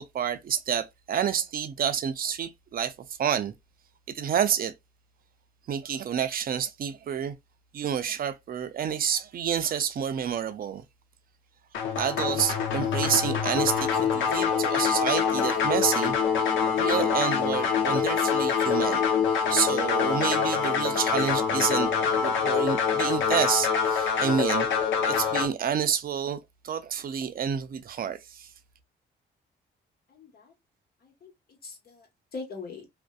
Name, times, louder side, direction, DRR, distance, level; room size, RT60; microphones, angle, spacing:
voice 1, 0.0-2.9 3.2-3.5 4.1-4.7 5.7-7.3 7.7-10.8 11.9-16.2 16.8-19.1 19.5-21.9 22.2-24.7 25.1-26.4 26.6-28.5, right 8 dB, 45° right, 0.5 m, -29 dB
sound 1, 11.7-25.5, left 6 dB, 75° left, 0.7 m, -25 dB
voice 2, 30.1-30.5 31.0-31.3 31.6-32.9, left 4 dB, 50° left, 1.2 m, -42 dB
2.5 x 2.1 x 2.3 m
cardioid pair, 90°, 20 cm